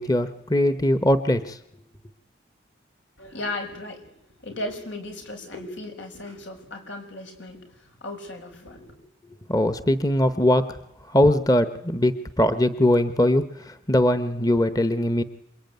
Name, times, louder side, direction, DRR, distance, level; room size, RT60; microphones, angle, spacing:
voice 1, 0.0-1.6 9.5-10.7 11.1-15.2, left 1 dB, 20° left, 11 dB, 1.0 m, -21 dB
voice 2, 3.2-9.0, left 2 dB, 90° left, 4 dB, 6.7 m, -36 dB
27.5 x 22.5 x 9.4 m, 0.81 s
head